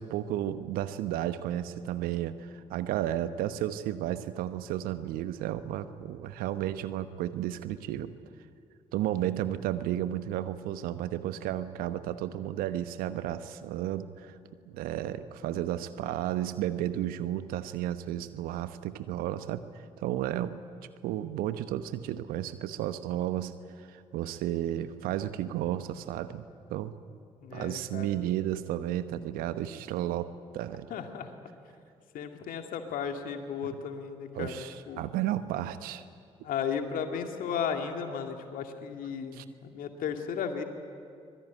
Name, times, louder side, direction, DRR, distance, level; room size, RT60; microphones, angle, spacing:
voice 1, 0.0-8.1 8.9-14.4 14.7-20.6 21.0-26.9 27.5-30.9 34.3-36.0 39.4-39.5, right 12 dB, 70° right, 12 dB, 1.1 m, -33 dB
voice 2, 27.4-28.2 30.9-31.3 32.1-34.5 34.9-35.0 36.4-40.6, left 7 dB, 65° left, 5 dB, 2.3 m, -35 dB
24.5 x 20.0 x 9.4 m, 2.3 s
hypercardioid pair, 40°, 16 cm